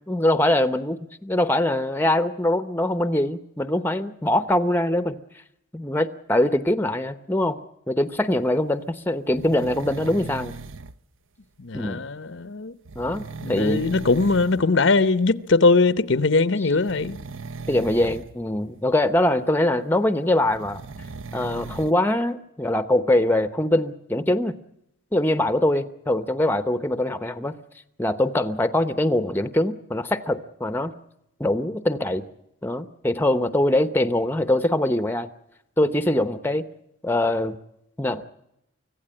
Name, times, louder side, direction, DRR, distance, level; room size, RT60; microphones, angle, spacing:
voice 1, 0.1-5.2 5.7-7.6 7.9-10.5 11.7-12.0 13.0-13.8 17.7-20.8 21.3-24.5 25.1-27.5 28.0-30.9 31.4-32.2 32.6-35.3 35.8-36.6 37.0-37.6 38.0-38.2, left 1 dB, 10° left, 0.8 m, -23 dB
sound 1, 9.3-11.0 12.8-14.6 14.9-15.3 16.7-18.3 20.4-21.9, right 4 dB, 70° right, 0.7 m, -38 dB
voice 2, 11.6-12.7 13.4-17.2, left 3 dB, 60° left, 0.8 m, -20 dB
25.0 x 16.0 x 8.7 m
head